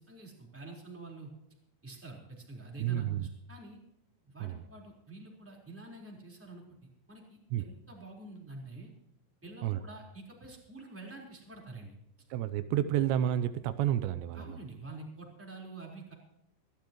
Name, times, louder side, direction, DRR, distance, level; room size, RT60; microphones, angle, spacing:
voice 1, 0.1-1.3 1.8-3.8 4.2-6.8 7.1-8.9 9.4-12.0 14.3-16.1, right 2 dB, 5° right, -1 dB, 3.5 m, -47 dB
voice 2, 2.8-3.2 4.4-4.6 7.5-7.7 9.6-9.8 12.3-14.6, right 11 dB, 85° right, 12 dB, 2.9 m, -30 dB
25.0 x 13.0 x 3.0 m, 0.81 s
omnidirectional pair, 5.0 m